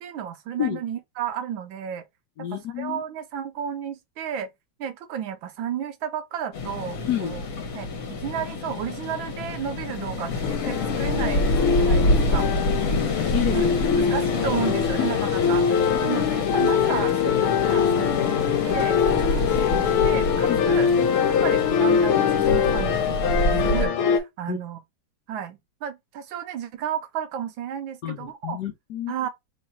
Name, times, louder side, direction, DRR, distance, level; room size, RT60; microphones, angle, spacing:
voice 1, 0.0-2.0 2.4-4.5 4.8-7.4 7.7-11.5 11.8-12.5 13.5-20.9 21.4-24.8 25.3-28.6 29.1-29.3, right 9 dB, 75° right, 1.3 m, -33 dB
voice 2, 2.4-3.0 7.1-7.3 12.9-14.2 15.0-15.1 16.2-16.3 20.5-20.6 24.5-24.6 28.0-29.1, left 10 dB, 70° left, 1.0 m, -29 dB
sound 1, 6.5-23.9, left 2 dB, 50° left, 1.3 m, -27 dB
sound 2, 10.4-24.2, left 7 dB, 90° left, 1.8 m, -23 dB
3.3 x 3.1 x 4.1 m
omnidirectional pair, 2.4 m